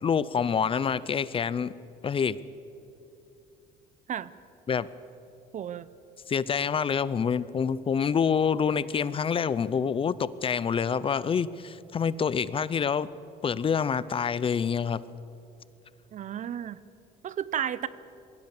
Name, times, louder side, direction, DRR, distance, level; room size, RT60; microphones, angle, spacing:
voice 1, 0.0-1.7 2.0-2.4 4.7-4.9 6.3-13.1 13.4-15.0, left 6 dB, 30° left, 18 dB, 0.5 m, -27 dB
voice 2, 5.5-5.9 16.1-16.8 17.2-17.9, right 9 dB, 45° right, 18 dB, 0.7 m, -32 dB
21.5 x 17.0 x 7.1 m, 2.7 s
cardioid pair, 110°, 17 cm